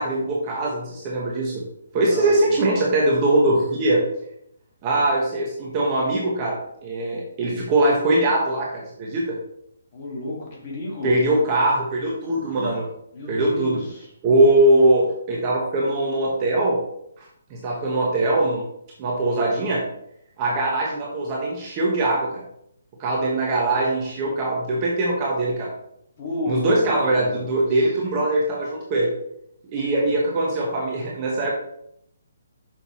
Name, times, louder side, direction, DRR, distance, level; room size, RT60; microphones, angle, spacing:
voice 1, 0.0-1.6 1.9-4.0 4.8-9.4 11.0-12.9 13.3-13.8 14.2-16.8 17.5-18.6 19.0-19.8 20.4-22.4 23.0-25.7 26.5-29.1 29.7-31.5, right 2 dB, 20° right, -3 dB, 1.0 m, -21 dB
voice 2, 1.9-2.6 9.9-11.2 12.4-12.8 13.1-14.1 26.2-27.9, left 1 dB, 25° left, -3 dB, 1.9 m, -32 dB
6.2 x 5.5 x 4.2 m, 0.75 s
hypercardioid pair, 175°, 0 cm